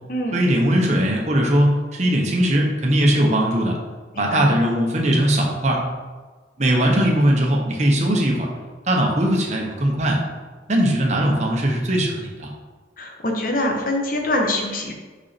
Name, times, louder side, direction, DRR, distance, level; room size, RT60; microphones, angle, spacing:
voice 1, 0.3-3.8 4.2-5.8 6.6-8.5 8.9-10.2 10.7-12.5, right 1 dB, 40° right, 0 dB, 1.2 m, -19 dB
voice 2, 4.1-4.5 13.0-14.9, left 1 dB, 50° left, 2 dB, 1.1 m, -24 dB
6.0 x 5.5 x 4.4 m, 1.3 s
head